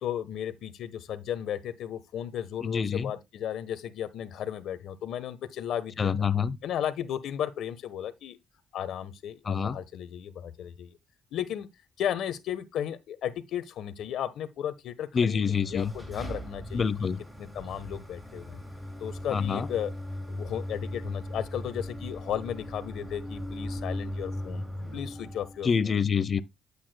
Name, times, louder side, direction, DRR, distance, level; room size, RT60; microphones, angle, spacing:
voice 1, 0.0-6.3 6.6-8.4 8.7-11.0 11.3-11.7 12.0-16.9 17.4-18.6 19.0-19.9 20.3-24.6 24.9-26.0, left 10 dB, 75° left, 1.1 m, -34 dB
voice 2, 2.6-3.1 6.0-6.6 9.4-9.8 15.1-15.9 16.7-17.2 19.3-19.7 25.6-26.4, left 6 dB, 40° left, 0.7 m, -26 dB
sound 1, 15.4-25.7, left 1 dB, 5° right, 4.7 m, -38 dB
9.6 x 8.5 x 2.2 m
cardioid pair, 90°, 0 cm